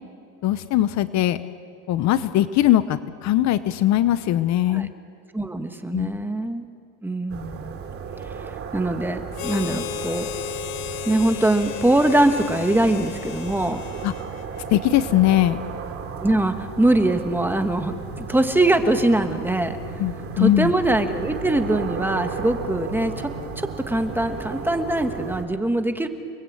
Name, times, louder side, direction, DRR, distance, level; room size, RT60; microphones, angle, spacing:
voice 1, 0.4-1.4 1.9-4.9 5.9-6.2 14.0-14.1 14.7-15.6 20.0-20.7, left 13 dB, 45° left, 13 dB, 0.8 m, -20 dB
voice 2, 5.3-6.7 7.0-7.8 8.3-10.3 11.0-13.8 16.2-19.8 20.4-23.3 23.6-26.1, right 1 dB, 5° right, 7 dB, 1.3 m, -22 dB
sound 1, 7.3-25.4, right 5 dB, 35° right, 2.8 m, -34 dB
Harmonica, 9.3-14.8, left 10 dB, 60° left, 1.6 m, -34 dB
30.0 x 20.5 x 8.6 m, 2.4 s
cardioid pair, 150°, 39 cm